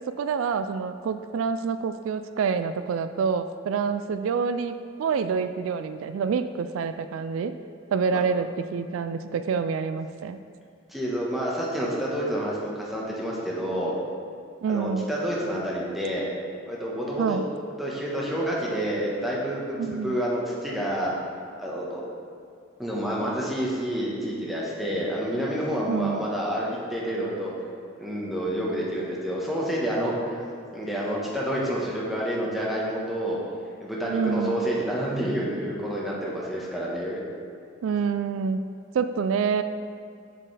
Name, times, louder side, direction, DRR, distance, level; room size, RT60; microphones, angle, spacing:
voice 1, 0.1-7.6 7.9-10.4 14.6-15.1 17.2-17.5 19.8-20.2 25.9-26.2 34.1-34.7 37.8-38.6 38.9-39.6, right 6 dB, 80° right, 10 dB, 0.3 m, -27 dB
voice 2, 10.9-14.0 14.7-16.3 16.7-17.4 17.8-21.1 21.6-22.0 22.8-27.5 28.0-30.4 30.7-33.4 33.8-37.2, equal, ahead, -5 dB, 1.1 m, -28 dB
7.3 x 6.8 x 3.3 m, 2.4 s
head